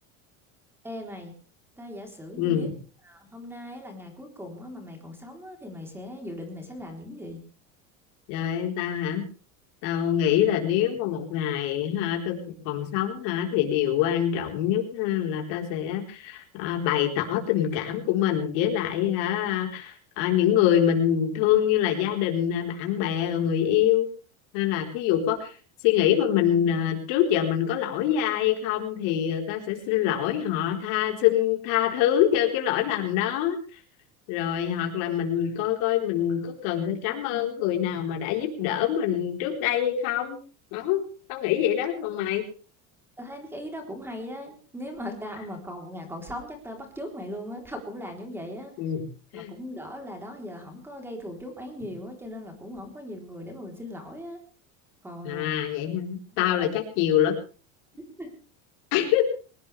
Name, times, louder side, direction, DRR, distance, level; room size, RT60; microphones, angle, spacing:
voice 1, 0.8-1.3 1.8-2.7 3.0-7.4 43.2-48.7 49.3-54.4 55.0-55.5 56.3-56.7 58.2-58.3, left 1 dB, 5° right, 3 dB, 3.7 m, -39 dB
voice 2, 2.4-2.7 8.3-9.2 9.8-24.1 24.5-25.5 25.8-33.6 34.3-40.4 40.7-41.0 41.3-42.4 48.8-49.0 49.3-49.5 55.2-57.3 58.9-59.2, left 10 dB, 60° left, 2 dB, 4.3 m, -25 dB
21.5 x 19.0 x 3.4 m, 0.36 s
cardioid pair, 155°, 37 cm